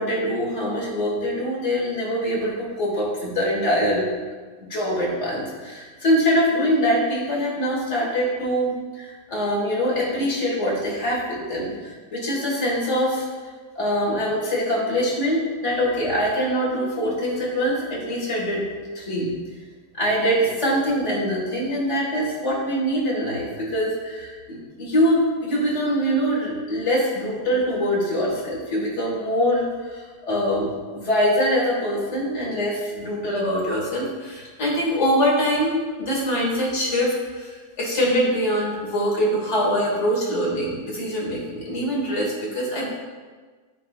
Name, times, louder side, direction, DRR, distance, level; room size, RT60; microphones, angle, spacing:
voice 1, 0.0-4.0 4.7-13.3 13.8-18.7 18.9-19.3 19.9-42.9, equal, 45° left, -5 dB, 1.9 m, -23 dB
11.0 x 3.7 x 2.3 m, 1.4 s
omnidirectional pair, 1.8 m